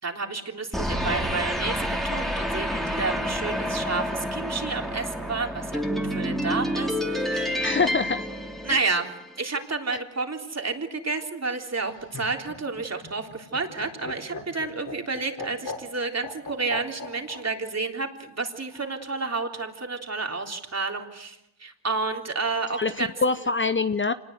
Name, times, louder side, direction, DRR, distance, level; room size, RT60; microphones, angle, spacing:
voice 1, 0.0-7.8 8.6-9.1 9.4-23.2, right 3 dB, 35° right, 3 dB, 3.6 m, -30 dB
sound 1, 0.7-9.3, equal, ahead, 3.0 m, -29 dB
voice 2, 7.6-8.2 8.7-8.8 22.7-24.1, left 4 dB, 25° left, 11 dB, 0.8 m, -25 dB
Laughter, 11.7-17.4 18.7-19.3, left 3 dB, 50° left, 6.3 m, -39 dB
26.0 x 20.0 x 8.1 m, 0.86 s
cardioid pair, 75°, 44 cm